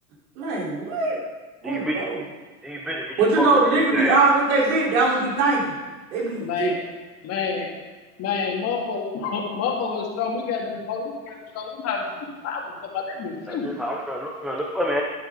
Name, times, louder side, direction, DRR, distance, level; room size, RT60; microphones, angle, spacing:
voice 1, 0.4-1.2 1.6-2.2 3.2-5.7 6.1-6.7, right 3 dB, 65° right, -4 dB, 4.5 m, -21 dB
voice 2, 1.6-2.0 2.6-3.5 3.7-4.2 13.5-15.0, equal, ahead, -1 dB, 0.4 m, -28 dB
voice 3, 6.4-6.8 7.2-7.7 8.2-13.7, left 5 dB, 35° left, -1 dB, 2.3 m, -28 dB
12.5 x 10.5 x 4.0 m, 1.3 s
supercardioid pair, 145°, 45 cm